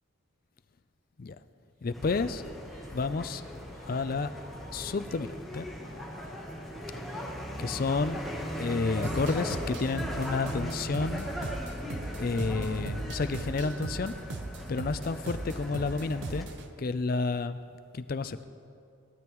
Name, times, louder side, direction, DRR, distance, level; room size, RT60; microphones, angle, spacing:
voice 1, 1.8-2.4 2.9-3.4 3.9-4.3 4.7-5.7 7.6-8.2 8.6-11.3 12.2-14.1 14.7-16.5 16.8-17.6 17.9-18.4, left 4 dB, 45° left, 12 dB, 0.4 m, -30 dB
Female singing, 1.8-8.8 9.4-13.2, left 2 dB, 40° right, 3.1 m, -56 dB
sound 1, 1.9-16.4, equal, ahead, 1.0 m, -38 dB
sound 2, 9.0-16.7, right 2 dB, 60° right, 0.7 m, -39 dB
18.0 x 12.5 x 3.0 m, 2.5 s
head